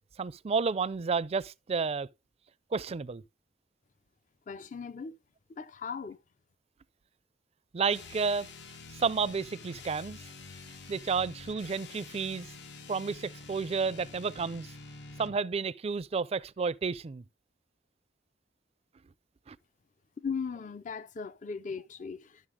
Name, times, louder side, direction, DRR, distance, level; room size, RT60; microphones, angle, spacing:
voice 1, 0.2-2.1 2.7-3.2 7.7-8.5 8.9-10.2 10.9-12.5 12.9-14.7 15.2-17.2 19.5-19.6, right 5 dB, 35° right, 0.4 m, -31 dB
voice 2, 4.5-5.1 5.5-6.2 20.2-22.4, left 5 dB, 45° left, 0.5 m, -38 dB
sound 1, 7.9-15.4, left 3 dB, 70° left, 1.1 m, -48 dB
11.0 x 6.5 x 3.6 m
head